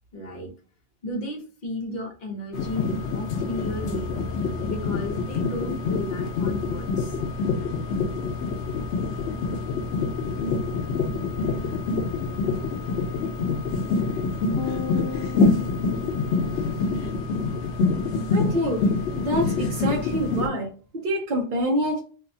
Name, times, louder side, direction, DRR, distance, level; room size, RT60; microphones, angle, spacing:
voice 1, 0.1-0.5 1.0-4.2 4.6-7.2, left 2 dB, 45° left, 0 dB, 0.8 m, -34 dB
sound 1, 2.5-20.5, left 4 dB, 85° left, 0.9 m, -26 dB
sound 2, 14.6-17.0, left 5 dB, 20° left, 0.5 m, -36 dB
voice 2, 18.3-18.9 19.1-22.0, equal, 55° right, -2 dB, 0.7 m, -26 dB
2.7 x 2.1 x 2.6 m, 0.39 s
omnidirectional pair, 1.1 m